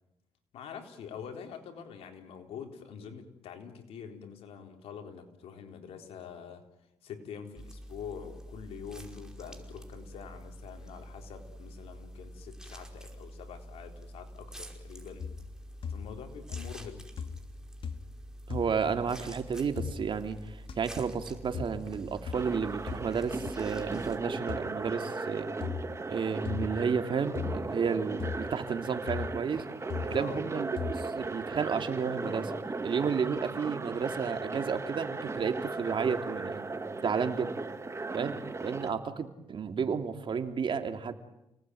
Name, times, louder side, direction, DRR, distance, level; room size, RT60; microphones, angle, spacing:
voice 1, 0.5-6.7 7.0-15.3 15.9-17.1 30.1-30.5, left 7 dB, 85° left, 5 dB, 3.9 m, -45 dB
sound 1, 7.6-24.2, equal, 5° right, 5.2 m, -47 dB
sound 2, 15.2-15.6 15.8-16.2 16.5-16.9 17.2-17.5 17.8-18.2 18.5-18.7 19.8-19.9 20.7-20.8 21.5-21.8 22.3-22.4 22.9-23.1 23.5-23.6 24.5-24.7 25.6-25.8 26.4-26.8 27.4-27.6 28.2-28.4 29.1-29.3 29.9-30.1 30.8-31.0, left 7 dB, 65° left, 2.4 m, -37 dB
voice 2, 18.5-25.5 26.1-29.7 30.1-32.5 32.8-36.7 37.0-37.5 38.1-41.1, right 6 dB, 55° right, 7 dB, 2.9 m, -32 dB
sound 3, 22.3-38.9, right 3 dB, 30° right, 2.2 m, -37 dB
29.5 x 19.5 x 9.4 m, 0.86 s
cardioid pair, 70°, 10 cm